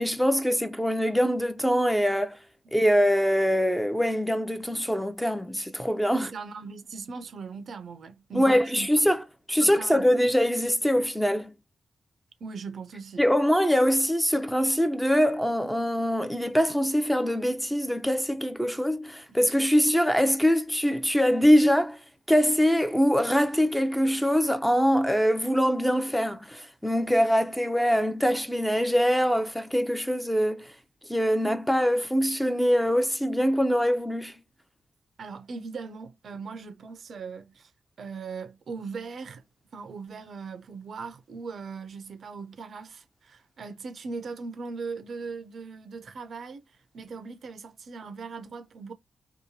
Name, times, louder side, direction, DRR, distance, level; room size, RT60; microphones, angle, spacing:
voice 1, 0.0-2.4 2.7-6.3 8.3-9.2 9.5-11.5 13.2-22.0 22.3-30.7 31.1-34.4, equal, 5° left, 0.6 m, -23 dB
voice 2, 6.1-8.9 9.6-10.3 12.4-13.2 35.2-37.7 38.0-39.4 39.7-46.6 46.9-48.9, right 4 dB, 70° right, 0.5 m, -39 dB
2.8 x 2.2 x 2.6 m
supercardioid pair, 40°, 0 cm